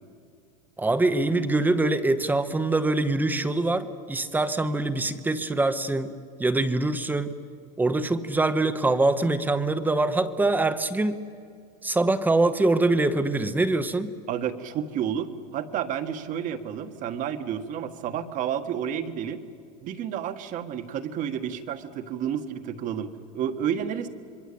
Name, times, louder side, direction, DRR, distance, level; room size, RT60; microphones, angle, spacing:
voice 1, 0.8-6.1 6.4-7.3 7.8-11.2 11.8-14.1, right 2 dB, 10° right, 11 dB, 1.0 m, -24 dB
voice 2, 14.3-19.4 19.8-24.1, right 9 dB, 40° right, 9 dB, 1.7 m, -30 dB
26.5 x 22.0 x 8.7 m, 2.4 s
supercardioid pair, 140°, 20 cm